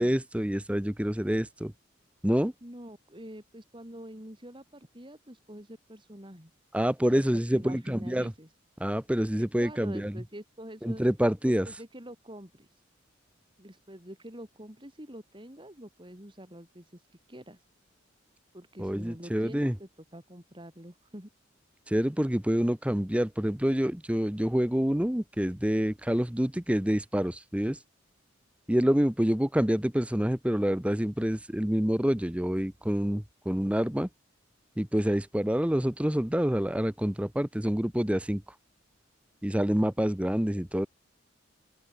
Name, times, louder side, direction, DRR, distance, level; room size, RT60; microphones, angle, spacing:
voice 1, 0.0-1.7 2.2-2.5 6.7-8.3 8.8-10.2 10.8-11.7 18.8-19.7 21.9-27.8 28.7-34.1 34.8-38.4 39.4-40.9, equal, 5° right, 0.8 m, -27 dB
voice 2, 2.6-6.5 7.1-7.2 7.5-8.5 9.4-11.0 11.5-12.7 13.6-16.9 17.3-17.6 18.5-21.3, right 1 dB, 25° right, 5.6 m, -46 dB
open air
head